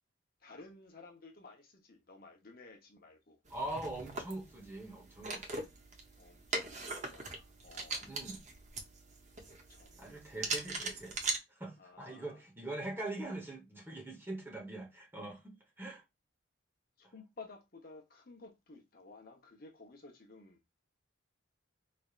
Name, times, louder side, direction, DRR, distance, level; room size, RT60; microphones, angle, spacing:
voice 1, 0.4-3.4 6.2-8.1 9.7-10.4 11.8-12.4 17.0-20.6, left 3 dB, 50° left, 0.9 m, -55 dB
voice 2, 3.5-5.6 8.0-8.4 10.0-11.2 11.5-16.0, right 2 dB, 10° right, 1.0 m, -42 dB
sound 1, 3.5-11.4, right 3 dB, 40° right, 0.8 m, -41 dB
4.1 x 3.3 x 2.4 m
head